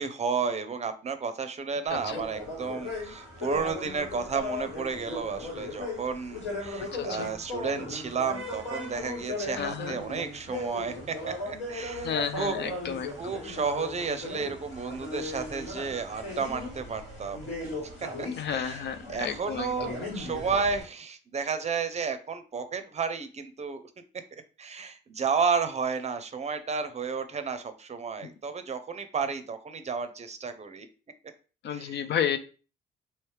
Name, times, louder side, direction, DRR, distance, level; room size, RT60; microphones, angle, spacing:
voice 1, 0.0-12.7 13.1-17.5 18.0-23.8 24.6-30.9 31.7-32.1, right 5 dB, 35° right, 10 dB, 0.5 m, -32 dB
sound 1, 1.9-20.8, left 2 dB, 85° left, 2.0 m, -37 dB
voice 2, 6.9-7.3 9.5-10.0 12.0-13.1 18.3-19.9 31.6-32.4, left 8 dB, 60° left, 10 dB, 0.5 m, -31 dB
3.1 x 2.9 x 3.2 m, 0.37 s
cardioid pair, 90°, 20 cm